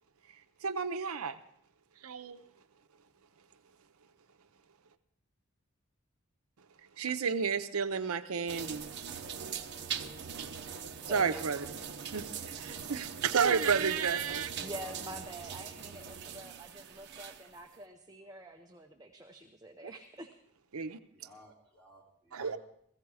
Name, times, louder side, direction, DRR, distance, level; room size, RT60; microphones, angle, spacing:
voice 1, 0.6-1.4 2.0-2.4 7.0-8.9 11.1-11.7 12.1-14.5 20.7-21.0 22.3-22.6, right 6 dB, 90° right, 10 dB, 0.7 m, -31 dB
sound 1, 8.5-17.6, right 7 dB, 55° right, 0.8 m, -41 dB
voice 2, 11.1-11.6 14.6-20.3, equal, 15° right, 3 dB, 0.7 m, -47 dB
voice 3, 21.1-22.6, equal, 10° left, -4 dB, 3.5 m, -57 dB
16.0 x 15.5 x 4.8 m, 0.70 s
head